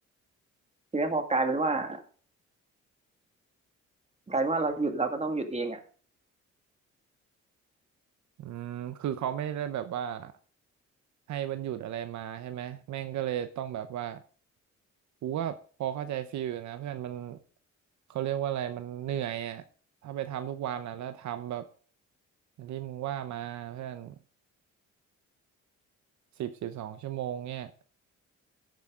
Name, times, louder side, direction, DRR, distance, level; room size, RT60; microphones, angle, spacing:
voice 1, 0.9-2.0 4.3-5.8, right 3 dB, 20° right, 2.1 m, -28 dB
voice 2, 8.4-10.3 11.3-14.2 15.2-17.4 18.1-19.6 20.0-21.7 22.6-24.1 26.4-27.7, right 11 dB, 70° right, 0.8 m, -34 dB
14.5 x 8.4 x 3.7 m
cardioid pair, 90°, 30 cm